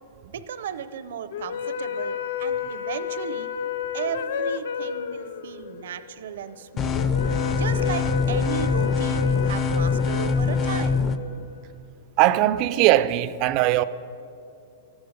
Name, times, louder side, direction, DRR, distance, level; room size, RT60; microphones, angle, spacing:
voice 1, 0.2-3.5 3.9-7.1 7.5-11.0, right 8 dB, 70° right, 0.7 m, -35 dB
sound 1, 1.3-11.7, left 7 dB, 65° left, 0.6 m, -31 dB
sound 2, 6.8-11.2, left 5 dB, 20° left, 0.5 m, -23 dB
voice 2, 12.2-13.8, right 14 dB, 30° right, 0.4 m, -20 dB
14.5 x 12.0 x 6.6 m
supercardioid pair, 170°, 0 cm